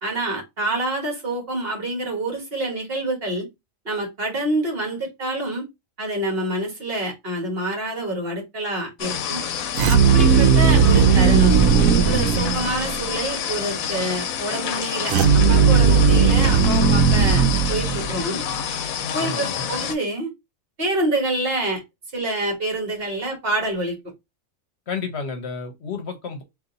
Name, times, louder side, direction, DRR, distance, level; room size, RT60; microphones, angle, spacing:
voice 1, 0.0-3.5 3.9-5.7 6.0-9.4 9.9-11.5 12.0-18.4 19.1-20.3 20.8-21.8 22.1-24.0, right 1 dB, 45° right, 1.7 m, -27 dB
sound 1, 9.0-19.9, left 8 dB, 90° left, 1.1 m, -28 dB
sound 2, 9.7-13.1 15.1-18.4, right 5 dB, 90° right, 1.0 m, -16 dB
voice 2, 19.2-19.6 24.9-26.4, left 5 dB, 60° left, 1.0 m, -31 dB
4.0 x 2.6 x 3.8 m
omnidirectional pair, 1.4 m